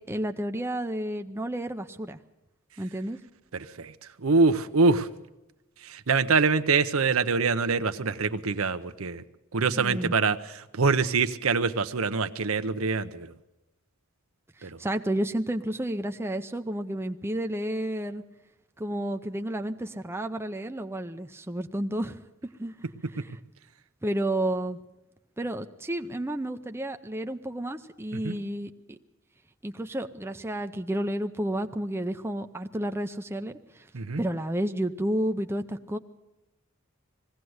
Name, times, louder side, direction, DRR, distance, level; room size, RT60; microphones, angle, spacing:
voice 1, 0.1-2.2 2.8-3.2 9.7-10.1 14.6-18.2 18.8-22.7 23.1-23.4 24.0-24.8 25.4-29.0 29.6-33.9 34.2-36.0, right 1 dB, 10° right, 6 dB, 0.6 m, -31 dB
voice 2, 3.5-3.9 4.2-5.1 5.8-9.2 9.5-10.4 10.7-13.3 14.6-14.8 28.2-28.4 33.9-34.2, right 4 dB, 70° right, 11 dB, 0.8 m, -24 dB
20.5 x 16.0 x 7.9 m, 0.96 s
head